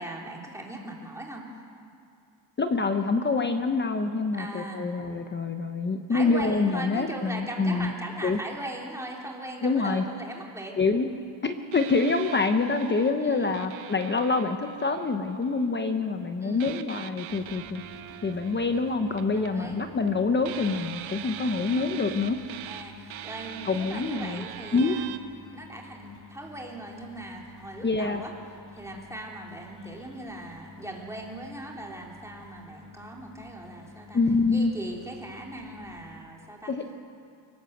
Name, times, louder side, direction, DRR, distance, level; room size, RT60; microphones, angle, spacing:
voice 1, 0.0-1.4 4.4-4.9 6.1-10.7 13.2-13.5 16.4-16.7 19.3-19.8 22.6-25.1 25.5-28.3 28.7-34.2 34.5-36.7, right 1 dB, 5° right, -1 dB, 3.2 m, -39 dB
voice 2, 2.6-7.9 8.2-8.4 9.6-10.0 10.8-11.1 11.4-17.8 18.2-22.4 23.6-24.5 24.7-25.0 27.8-28.2 34.1-34.7 36.7-36.8, left 4 dB, 25° left, 7 dB, 0.9 m, -26 dB
sound 1, 11.7-15.6 16.6-20.1 20.4-25.2, right 12 dB, 85° right, 1.2 m, -42 dB
sound 2, 17.3-36.2, left 3 dB, 40° left, 2.5 m, -50 dB
25.0 x 18.5 x 7.9 m, 2.4 s
cardioid pair, 165°, 47 cm